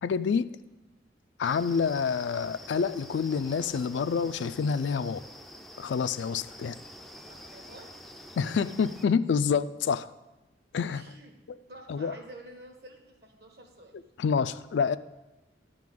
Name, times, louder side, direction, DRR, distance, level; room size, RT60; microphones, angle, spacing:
voice 1, 0.0-0.5 1.4-5.2 5.8-6.8 8.4-10.1 10.7-11.0 11.5-11.6 11.9-12.1 14.2-15.0, left 6 dB, 80° left, 13 dB, 0.3 m, -27 dB
sound 1, 1.4-9.1, left 1 dB, ahead, 0.3 m, -47 dB
voice 2, 7.3-8.0 10.8-11.4 11.7-14.0 14.4-14.6, right 1 dB, 60° right, 3 dB, 1.4 m, -50 dB
11.0 x 3.8 x 7.5 m, 1.0 s
head